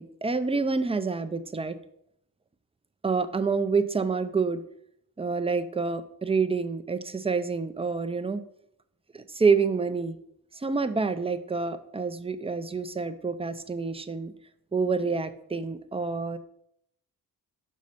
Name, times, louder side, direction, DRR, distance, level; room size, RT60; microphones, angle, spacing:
voice 1, 0.0-1.8 3.0-4.6 5.2-8.4 9.1-10.2 10.5-14.3 14.7-16.4, right 4 dB, 15° right, 11 dB, 0.4 m, -27 dB
6.2 x 5.2 x 5.6 m, 0.72 s
wide cardioid pair, 160°, 38 cm